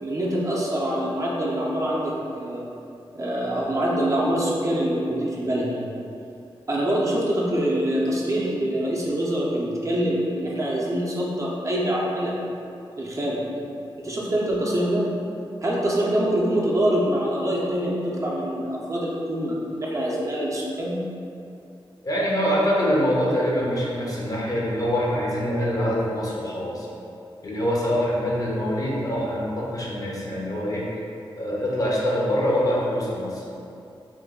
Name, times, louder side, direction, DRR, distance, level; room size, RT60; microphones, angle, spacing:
voice 1, 0.0-2.6 3.1-5.9 6.7-12.4 13.0-13.4 14.0-15.0 15.6-21.0, right 1 dB, 35° right, -4 dB, 0.5 m, -25 dB
voice 2, 22.0-26.9 27.4-30.9 31.4-33.5, equal, 40° left, -4 dB, 0.6 m, -24 dB
3.0 x 2.2 x 3.5 m, 2.6 s
wide cardioid pair, 110°, 9 cm